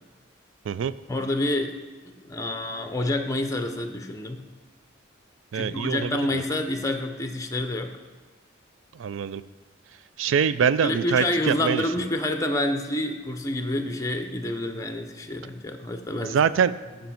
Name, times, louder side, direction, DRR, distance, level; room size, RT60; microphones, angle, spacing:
voice 1, 1.1-1.8 2.0-4.4 5.5-7.9 10.8-16.4, left 1 dB, 15° left, 6 dB, 0.6 m, -28 dB
voice 2, 5.5-6.4 8.9-9.4 10.2-11.8 16.2-16.7, right 7 dB, 75° right, 15 dB, 0.4 m, -24 dB
9.3 x 5.2 x 5.8 m, 1.3 s
head